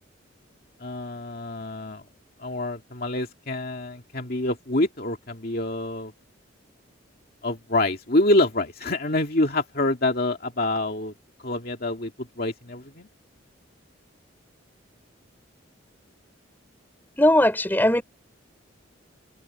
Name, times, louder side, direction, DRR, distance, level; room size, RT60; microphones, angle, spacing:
voice 1, 0.8-2.0 2.4-6.1 7.4-11.1 11.4-13.1, left 2 dB, 50° left, 2.3 m, -26 dB
voice 2, 17.2-18.0, left 1 dB, 10° left, 4.8 m, -19 dB
head